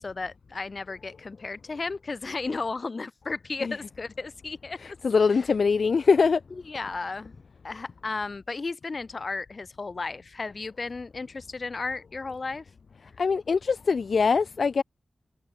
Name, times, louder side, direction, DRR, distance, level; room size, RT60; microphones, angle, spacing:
voice 1, 0.0-5.0 5.3-5.5 6.5-7.4 7.6-12.7, left 3 dB, 50° left, 2.3 m, -34 dB
voice 2, 4.8-6.4 13.2-14.8, left 5 dB, 70° left, 0.7 m, -23 dB
cardioid pair, 65°, 0 cm